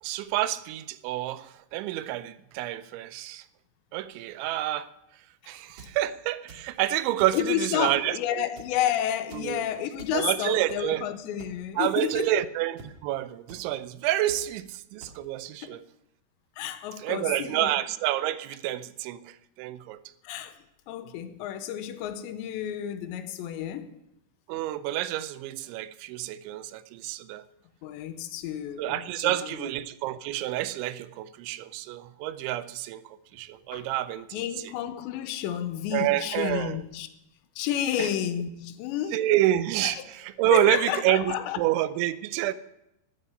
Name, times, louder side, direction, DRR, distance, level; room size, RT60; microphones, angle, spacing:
voice 1, 0.0-3.5 3.9-4.9 5.5-8.5 9.3-9.6 10.1-11.0 11.8-15.8 17.0-20.0 24.5-27.4 28.8-34.4 35.9-36.8 38.0-38.1 39.1-42.5, right 14 dB, 90° right, 3.1 m, -28 dB
sound 1, 5.6-6.0 6.5-6.8 7.2-7.4 7.8-8.2 8.5-8.8 9.3-9.5 10.0-10.1 10.7-10.9 11.4-11.5 12.1-12.2 12.8-12.9 13.5-13.6 14.3-14.4 15.0-15.1, right 4 dB, 45° right, 2.3 m, -47 dB
voice 2, 7.3-12.4 15.6-15.8 16.6-17.7 20.2-20.6 20.9-24.0 27.8-29.7 33.7-33.9 34.3-37.1 37.6-39.2 39.8-40.1 40.5-41.6, left 10 dB, 85° left, 3.0 m, -31 dB
12.0 x 9.6 x 9.7 m
omnidirectional pair, 5.2 m